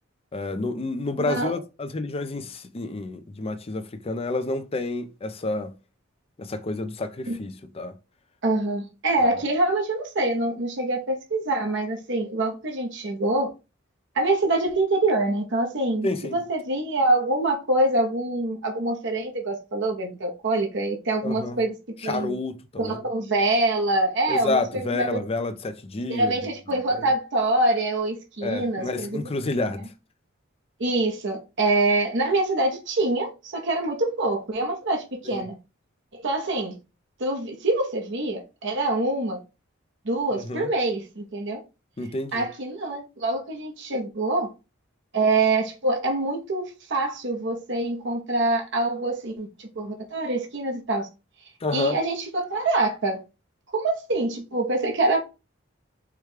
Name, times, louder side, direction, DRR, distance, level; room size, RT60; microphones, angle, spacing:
voice 1, 0.3-5.7 6.4-7.9 9.2-9.3 16.0-16.4 21.2-21.6 22.0-23.0 24.3-26.3 26.9-27.1 28.4-29.9 35.3-35.4 40.3-40.7 42.0-42.5 51.6-52.0, left 2 dB, 30° left, 0.5 m, -29 dB
voice 2, 1.2-1.6 7.3-7.4 8.4-13.5 14.1-21.8 22.0-22.4 22.8-25.2 26.1-29.2 30.8-35.5 36.1-36.7 37.2-39.4 40.0-41.6 42.3-44.5 45.1-51.1 51.7-53.2 53.7-55.2, right 2 dB, 65° right, 0.9 m, -25 dB
4.8 x 2.2 x 4.8 m
head